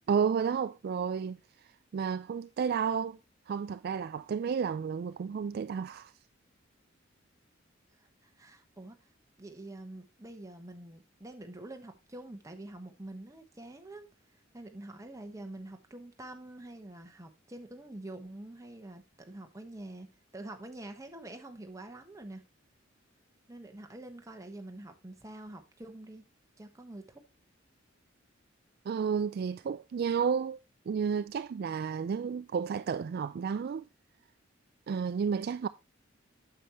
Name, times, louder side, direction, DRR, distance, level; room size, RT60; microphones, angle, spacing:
voice 1, 0.1-1.4 1.9-3.2 3.5-6.1 28.9-30.6 30.9-33.9 34.9-35.7, right 6 dB, 50° right, 0.3 m, -31 dB
voice 2, 8.0-9.0 9.4-14.1 14.5-20.1 20.3-22.4 23.5-26.2 26.6-27.2, right 1 dB, 15° right, 1.2 m, -46 dB
8.6 x 7.0 x 3.0 m
head